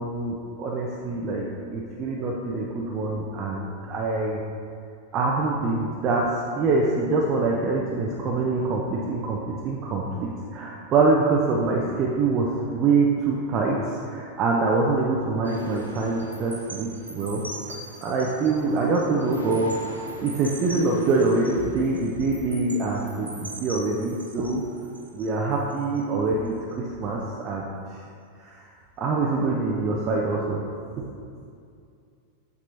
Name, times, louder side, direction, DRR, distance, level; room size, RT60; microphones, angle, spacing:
voice 1, 0.0-1.5 1.7-4.4 5.1-6.3 6.5-17.4 17.7-24.6 25.1-27.2 27.4-27.7 28.4-28.6 29.0-30.6 31.0-31.1, right 3 dB, 35° right, -2 dB, 0.6 m, -25 dB
Wind Chimes and Waves, 15.4-26.0 26.4-26.7, right 1 dB, 85° right, 0.8 m, -42 dB
7.2 x 6.9 x 2.6 m, 2.4 s
figure-of-eight pair, 90°, 0 cm